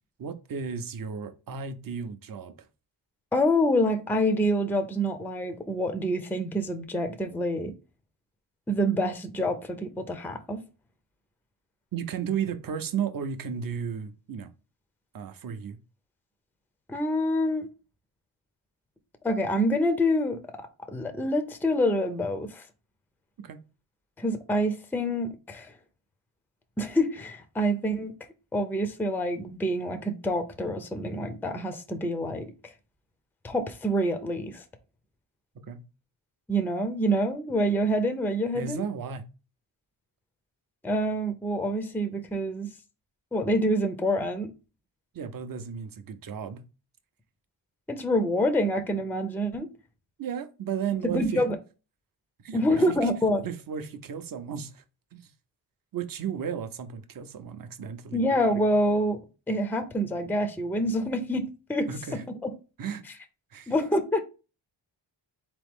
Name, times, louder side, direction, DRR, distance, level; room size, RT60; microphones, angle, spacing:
voice 1, 0.2-2.5 11.9-14.5 15.1-15.8 23.4-23.6 35.7-35.8 38.5-39.3 45.1-46.6 50.2-51.4 52.4-53.1 53.4-54.8 55.1-55.3 55.9-58.2 61.9-62.2 62.8-63.0 63.5-63.7, right 7 dB, 45° right, 0.6 m, -34 dB
voice 2, 3.3-7.7 8.7-10.6 16.9-17.7 19.2-20.4 20.9-22.6 24.2-25.7 26.8-28.1 28.5-32.5 33.4-34.6 36.5-38.8 40.8-42.7 43.3-44.5 47.9-49.7 51.0-51.6 52.5-53.4 58.1-59.2 59.5-61.4 61.7-61.9 62.4-62.5 63.7-64.2, equal, 5° left, 0.5 m, -26 dB
4.0 x 3.0 x 3.5 m
wide cardioid pair, 115°, 47 cm